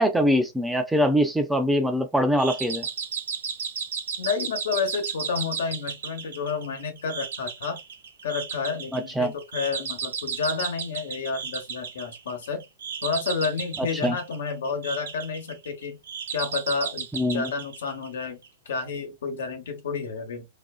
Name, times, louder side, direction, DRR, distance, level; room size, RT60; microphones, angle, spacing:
voice 1, 0.0-2.9 8.9-9.3 13.8-14.2 17.1-17.5, equal, 5° right, 0.4 m, -23 dB
sound 1, 2.4-18.5, right 6 dB, 90° right, 0.5 m, -34 dB
voice 2, 4.2-7.8 8.2-12.6 13.0-16.0 16.3-18.4 18.7-20.5, left 5 dB, 80° left, 0.9 m, -30 dB
2.5 x 2.3 x 2.3 m
hypercardioid pair, 135°, 0 cm